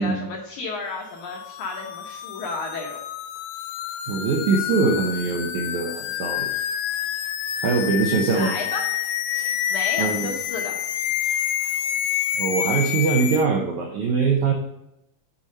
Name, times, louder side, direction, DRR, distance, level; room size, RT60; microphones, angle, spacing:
voice 1, 0.0-3.0 8.3-8.8 9.7-10.8, left 3 dB, 70° left, -1 dB, 2.0 m, -32 dB
sound 1, 1.2-13.4, left 11 dB, 85° left, 2.0 m, -28 dB
voice 2, 4.1-6.5 7.6-8.6 9.3-9.5 10.0-10.3 12.4-14.5, right 4 dB, 80° right, 0 dB, 1.7 m, -22 dB
8.6 x 4.3 x 5.2 m, 0.86 s
omnidirectional pair, 4.5 m